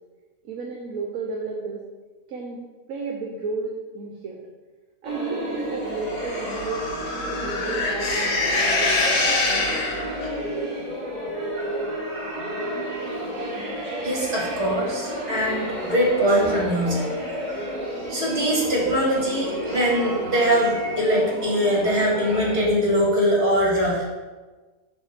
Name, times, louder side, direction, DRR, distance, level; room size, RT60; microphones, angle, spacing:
voice 1, 0.4-1.8 2.3-2.6 2.9-4.4 5.0-9.8, right 4 dB, 65° right, 0 dB, 1.1 m, -33 dB
sound 1, 5.0-22.7, right 1 dB, 30° right, 1.3 m, -31 dB
sound 2, 6.0-10.3, left 3 dB, 75° left, 1.4 m, -25 dB
voice 2, 14.0-17.1 18.1-24.0, equal, 45° right, -4 dB, 2.1 m, -22 dB
6.8 x 2.7 x 5.7 m, 1.3 s
omnidirectional pair, 1.6 m